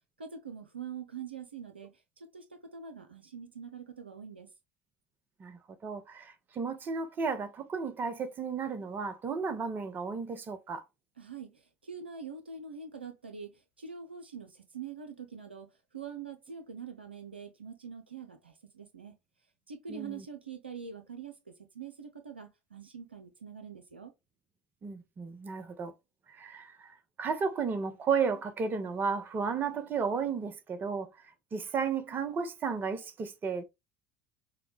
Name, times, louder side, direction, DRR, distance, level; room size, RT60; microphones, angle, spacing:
voice 1, 0.2-4.5 11.2-13.5 13.8-15.7 15.9-19.1 19.7-21.4 21.7-24.1, right 6 dB, 85° right, 0.6 m, -44 dB
voice 2, 5.4-10.8 19.9-20.2 24.8-25.9 26.3-31.1 31.5-33.6, right 5 dB, 35° right, 0.9 m, -33 dB
6.8 x 2.3 x 3.3 m
figure-of-eight pair, 65°, 6 cm